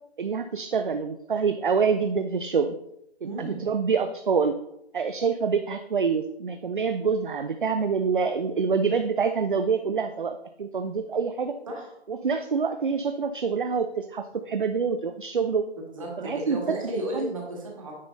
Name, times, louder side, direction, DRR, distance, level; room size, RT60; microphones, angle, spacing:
voice 1, 0.2-2.7 3.2-4.6 4.9-11.6 12.1-15.7 16.2-16.8 17.1-17.3, right 5 dB, 50° right, 8 dB, 0.4 m, -26 dB
voice 2, 3.2-3.6 11.7-11.9 15.9-17.9, right 1 dB, 30° right, -1 dB, 1.7 m, -33 dB
9.6 x 3.7 x 4.0 m, 0.80 s
hypercardioid pair, 175°, 33 cm